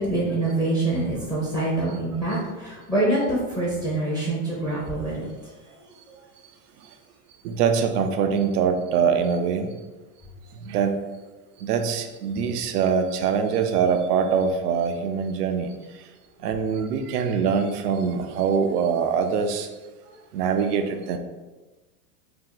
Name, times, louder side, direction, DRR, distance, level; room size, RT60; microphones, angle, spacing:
voice 1, 0.0-5.3, right 2 dB, 5° left, -7 dB, 0.7 m, -25 dB
voice 2, 1.9-2.2 6.8-7.0 7.4-9.7 10.5-11.0 11.6-16.1 16.4-19.7 20.3-21.2, right 6 dB, 80° right, 7 dB, 0.6 m, -24 dB
2.8 x 2.1 x 3.8 m, 1.2 s
supercardioid pair, 125°, 46 cm